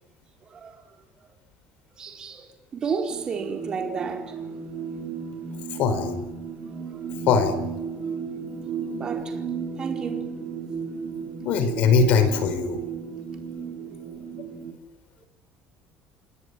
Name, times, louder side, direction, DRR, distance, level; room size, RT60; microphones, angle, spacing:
voice 1, 0.4-1.0 1.9-4.6 6.7-7.1 7.9-8.2 8.9-9.4 9.8-10.7 13.3-14.2, right 5 dB, 25° right, 4.4 m, -34 dB
sound 1, 3.1-14.7, right 6 dB, 50° right, 4.3 m, -34 dB
voice 2, 5.8-6.2 7.3-7.6 11.4-12.8, left 5 dB, 55° left, 5.0 m, -21 dB
28.0 x 19.0 x 9.9 m
cardioid pair, 165°, 3 cm